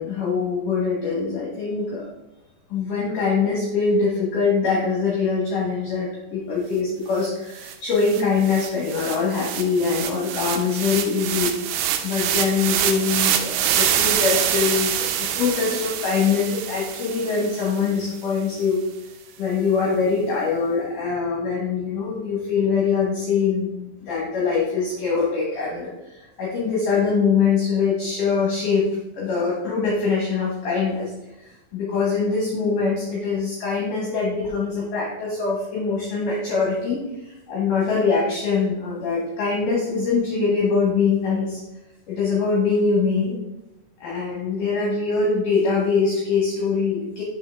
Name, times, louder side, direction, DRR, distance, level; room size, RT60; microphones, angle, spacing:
voice 1, 0.0-2.1 2.7-11.5 12.0-18.8 19.4-28.9 29.1-31.1 31.4-41.6 42.1-43.4 44.0-47.2, left 5 dB, 65° left, -5 dB, 2.3 m, -23 dB
sound 1, 7.2-7.3 7.6-17.9, right 10 dB, 85° right, 2.6 m, -25 dB
5.6 x 5.6 x 3.4 m, 1.0 s
omnidirectional pair, 4.7 m